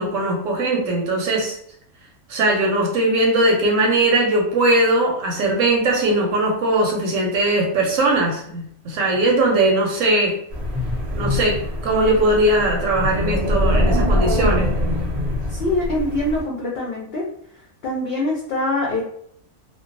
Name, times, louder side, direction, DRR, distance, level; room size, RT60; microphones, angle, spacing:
voice 1, 0.0-1.6 2.3-10.4 11.1-14.7, right 2 dB, 70° right, 0 dB, 0.9 m, -19 dB
Wind, 10.5-16.4, left 1 dB, 40° right, 0.6 m, -23 dB
voice 2, 15.5-17.2 17.8-19.0, left 2 dB, 70° left, -3 dB, 0.6 m, -24 dB
2.3 x 2.2 x 2.4 m, 0.68 s
omnidirectional pair, 1.5 m